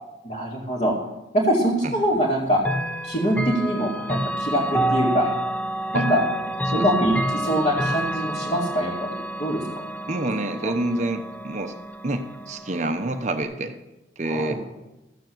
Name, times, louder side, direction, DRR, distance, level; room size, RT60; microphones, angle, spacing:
voice 1, 0.2-0.9 1.3-2.6 3.0-5.3 5.9-6.2 6.7-9.8 10.6-10.7 14.2-14.6, equal, 40° left, -5 dB, 2.2 m, -24 dB
Chime / Clock, 2.6-13.4, right 1 dB, 10° left, 0.7 m, -29 dB
voice 2, 10.1-11.7 12.0-13.8 14.2-14.6, right 2 dB, 40° right, 7 dB, 0.7 m, -27 dB
14.0 x 7.2 x 7.8 m, 1.0 s
head